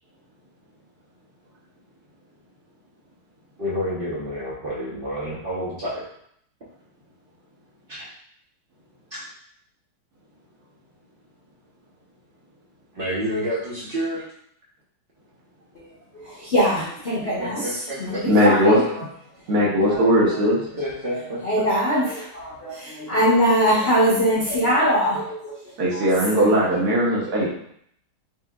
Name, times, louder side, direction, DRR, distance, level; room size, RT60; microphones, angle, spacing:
voice 1, 3.6-6.0 7.9-8.0 9.1-9.2 12.9-14.2 17.4-18.4 20.8-21.6, equal, 75° right, -8 dB, 0.5 m, -29 dB
voice 2, 16.2-17.7 18.0-18.9 19.9-20.0 21.4-25.5 25.9-26.0 26.3-26.6, equal, 55° left, -7 dB, 0.6 m, -22 dB
voice 3, 18.3-18.8 19.5-20.6 25.8-27.5, equal, 55° right, -5 dB, 1.3 m, -18 dB
6.1 x 2.8 x 2.3 m, 0.69 s
omnidirectional pair, 2.3 m